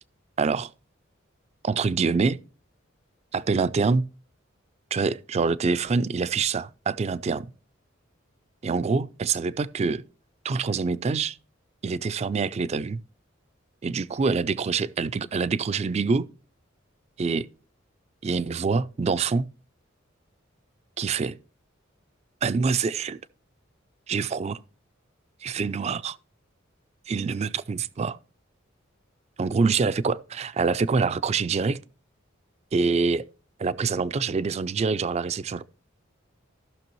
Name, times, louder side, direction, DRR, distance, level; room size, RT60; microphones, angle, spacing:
voice 1, 0.4-0.7 1.6-2.4 3.3-4.0 4.9-7.5 8.6-10.0 10.4-11.4 11.8-13.0 13.8-16.3 17.2-17.5 18.2-19.4 21.0-21.4 22.4-23.2 24.1-24.6 25.4-26.2 27.1-28.2 29.4-31.8 32.7-33.2 33.6-35.6, right 4 dB, 30° right, 0.3 m, -25 dB
15.0 x 6.0 x 3.0 m
head